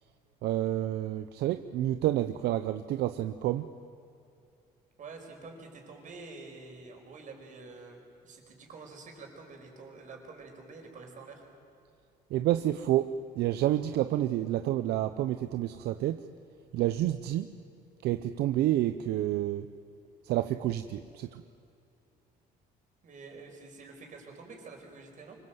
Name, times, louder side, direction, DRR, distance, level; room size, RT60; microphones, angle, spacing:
voice 1, 0.4-3.7 12.3-16.2 16.7-17.5 18.0-19.7 20.2-21.4, right 13 dB, 75° right, 10 dB, 0.7 m, -29 dB
voice 2, 5.0-11.4 23.0-25.4, right 3 dB, 50° right, 2 dB, 5.3 m, -48 dB
24.5 x 22.5 x 8.0 m, 2.5 s
cardioid pair, 110°, 17 cm